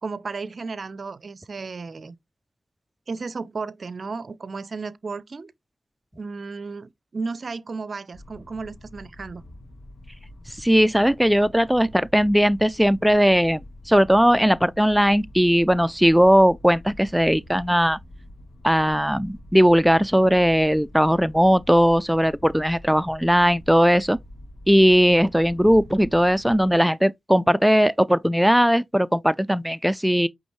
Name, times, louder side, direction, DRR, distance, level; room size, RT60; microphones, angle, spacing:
voice 1, 0.0-2.2 3.1-5.5 6.2-9.4, right 4 dB, 50° right, 0.6 m, -34 dB
sound 1, 8.1-26.8, left 1 dB, 75° left, 2.1 m, -45 dB
voice 2, 10.6-13.6 13.9-18.0 18.6-24.2 24.7-30.3, equal, 5° right, 0.4 m, -18 dB
8.5 x 3.6 x 3.2 m
supercardioid pair, 50°, 0 cm